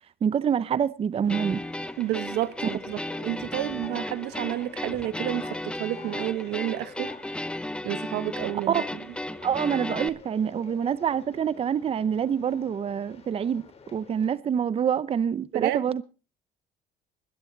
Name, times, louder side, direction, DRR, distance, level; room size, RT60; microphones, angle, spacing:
voice 1, 0.2-1.6 2.6-2.7 8.7-8.8 9.4-13.6 13.9-16.0, right 8 dB, 35° right, 0.6 m, -26 dB
Conversation, 1.2-14.3, left 5 dB, 35° left, 3.7 m, -48 dB
sound 1, 1.3-10.1, left 1 dB, 5° left, 0.8 m, -35 dB
voice 2, 2.0-7.1 7.8-8.8 15.5-15.8, right 14 dB, 90° right, 1.1 m, -30 dB
21.0 x 10.5 x 3.9 m
cardioid pair, 110°, 17 cm